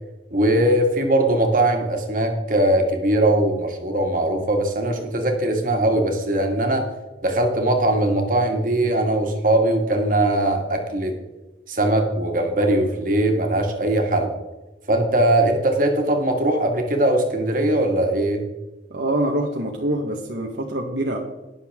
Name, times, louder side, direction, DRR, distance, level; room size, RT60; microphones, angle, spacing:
voice 1, 0.3-6.8 7.2-11.2 11.7-14.4 14.9-18.4, right 1 dB, 45° right, 3 dB, 2.0 m, -20 dB
voice 2, 18.9-21.2, right 1 dB, 65° right, 0 dB, 1.3 m, -25 dB
20.0 x 7.0 x 3.6 m, 1.1 s
head